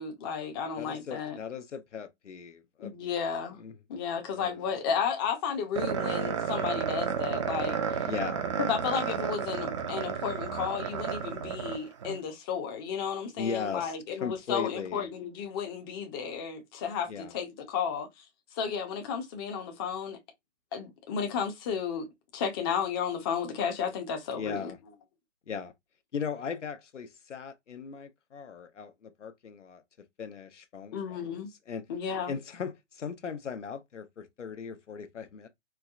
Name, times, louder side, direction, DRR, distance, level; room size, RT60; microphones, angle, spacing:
voice 1, 0.0-1.4 2.8-3.6 3.9-8.0 8.6-18.2 18.5-20.2 20.7-22.1 22.3-24.7 30.9-31.5 31.9-32.3, left 7 dB, 20° left, 0.6 m, -33 dB
voice 2, 0.8-3.1 3.6-3.8 4.3-4.7 8.1-8.5 13.4-14.0 14.2-15.1 17.1-17.3 24.3-24.8 25.5-25.7 26.1-29.8 30.2-31.2 31.7-31.9 32.3-35.5, left 6 dB, 85° left, 0.8 m, -38 dB
sound 1, 5.8-12.2, right 7 dB, 25° right, 0.4 m, -32 dB
4.5 x 2.1 x 2.4 m
hypercardioid pair, 140°, 36 cm